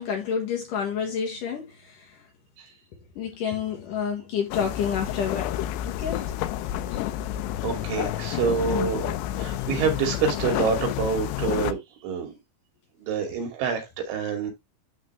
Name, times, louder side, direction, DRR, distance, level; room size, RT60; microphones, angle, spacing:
voice 1, 0.0-2.0 3.2-5.5 5.9-6.3 8.6-8.9, left 7 dB, 60° left, 2.4 m, -29 dB
sound 1, 4.5-11.7, left 13 dB, 80° left, 2.8 m, -29 dB
voice 2, 7.6-9.1 9.4-12.3 13.0-14.5, right 6 dB, 85° right, 5.0 m, -27 dB
11.5 x 3.9 x 3.3 m
omnidirectional pair, 5.2 m